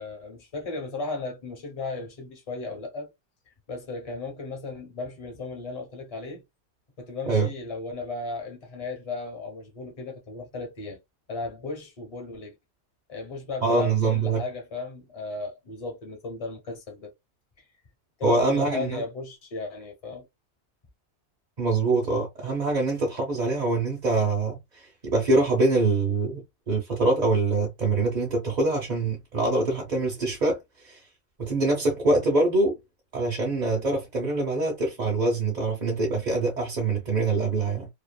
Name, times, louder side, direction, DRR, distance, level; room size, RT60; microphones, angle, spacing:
voice 1, 0.0-3.1 3.7-6.4 7.0-11.0 11.3-12.5 13.1-17.1 17.6-17.7 18.2-20.3, left 3 dB, 30° left, 0.9 m, -35 dB
voice 2, 13.6-14.4 18.2-19.0 21.6-26.4 26.7-30.6 30.8-31.0 31.4-32.8 33.1-37.9, right 3 dB, 40° right, 0.7 m, -24 dB
2.8 x 2.5 x 2.2 m
omnidirectional pair, 1.5 m